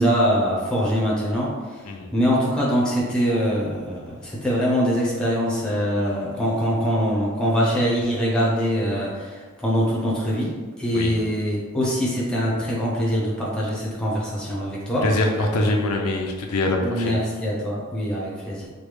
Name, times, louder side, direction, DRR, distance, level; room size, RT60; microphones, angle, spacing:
voice 1, 0.0-1.8 2.1-15.1 16.8-18.7, equal, 5° left, -6 dB, 0.6 m, -23 dB
voice 2, 15.0-17.2, left 2 dB, 85° left, 2 dB, 0.4 m, -23 dB
3.2 x 2.2 x 3.2 m, 1.5 s
head